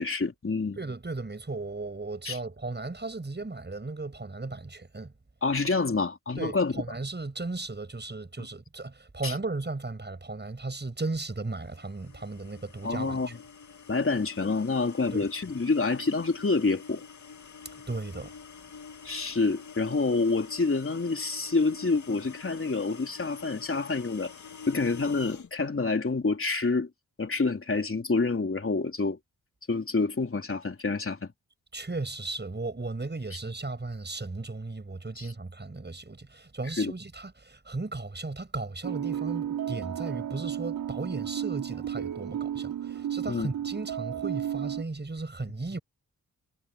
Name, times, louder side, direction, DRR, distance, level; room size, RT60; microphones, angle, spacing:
voice 1, 0.0-0.8 2.3-2.4 5.4-6.8 8.4-8.5 9.2-9.4 12.8-13.4 13.9-17.0 19.1-24.3 24.7-26.9 27.2-29.2 29.7-31.3 35.2-35.3 36.8-36.9 43.3-43.5, left 3 dB, 35° left, 3.6 m, -27 dB
voice 2, 0.8-5.1 6.4-13.3 15.1-15.2 17.9-18.3 31.7-45.8, right 3 dB, 30° right, 7.5 m, -36 dB
sound 1, 11.6-25.5, left 5 dB, 55° left, 2.2 m, -47 dB
sound 2, 38.8-44.8, right 10 dB, 80° right, 3.9 m, -33 dB
supercardioid pair, 45°, 35 cm